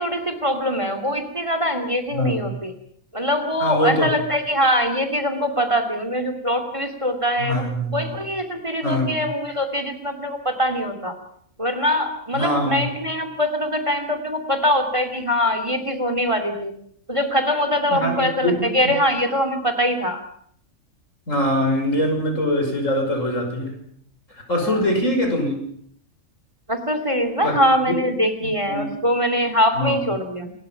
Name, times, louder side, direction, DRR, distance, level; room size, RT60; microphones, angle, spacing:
voice 1, 0.0-2.7 3.1-11.2 11.6-16.7 17.1-20.2 24.6-24.9 26.7-30.5, equal, 20° right, 8 dB, 2.7 m, -23 dB
voice 2, 3.6-4.1 7.4-8.1 8.8-9.1 12.3-12.9 17.9-18.9 21.3-23.8 24.3-25.5 27.4-27.6 27.8-27.9 28.4-28.9 29.7-30.0, left 1 dB, 70° left, 3 dB, 6.3 m, -23 dB
27.5 x 21.0 x 5.9 m, 0.65 s
omnidirectional pair, 1.4 m